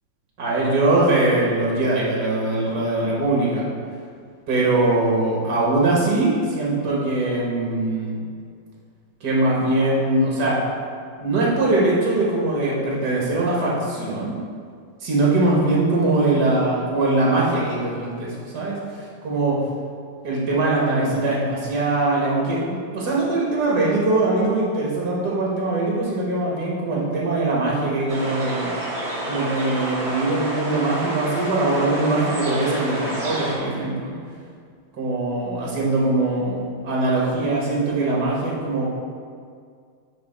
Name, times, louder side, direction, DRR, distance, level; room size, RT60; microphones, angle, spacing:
voice 1, 0.4-3.7 4.5-8.2 9.2-10.6 11.2-14.4 15.0-18.8 19.2-19.6 20.2-28.7 29.2-34.1 35.0-38.9, right 2 dB, 55° right, -4 dB, 1.9 m, -22 dB
sound 1, 28.1-33.6, right 1 dB, 40° right, 1.2 m, -29 dB
8.6 x 3.9 x 3.9 m, 2.1 s
omnidirectional pair, 2.2 m